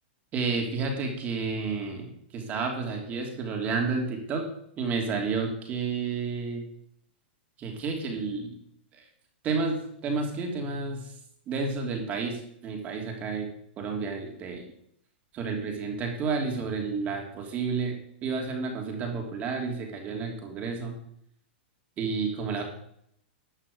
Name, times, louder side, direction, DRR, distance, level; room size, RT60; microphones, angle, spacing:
voice 1, 0.3-4.5 4.8-6.6 7.6-8.5 8.9-9.0 9.4-11.1 11.5-13.5 13.8-14.6 15.3-18.0 18.2-20.9 22.0-22.6, right 4 dB, 25° right, 2 dB, 3.1 m, -31 dB
12.5 x 6.5 x 8.4 m, 0.69 s
hypercardioid pair, 150°, 6 cm